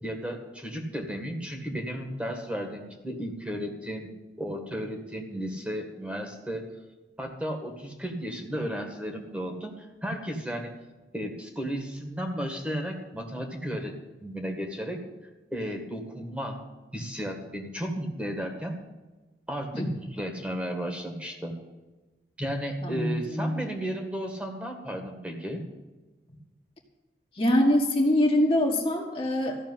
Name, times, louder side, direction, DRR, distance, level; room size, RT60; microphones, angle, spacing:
voice 1, 0.0-4.1 4.4-6.7 7.2-10.7 11.1-15.0 15.5-16.6 16.9-18.8 19.5-21.6 22.4-25.6, equal, 5° right, 2 dB, 1.9 m, -34 dB
voice 2, 22.8-23.7 27.4-29.6, left 1 dB, 30° left, 0 dB, 1.8 m, -24 dB
14.5 x 6.6 x 9.9 m, 1.2 s
head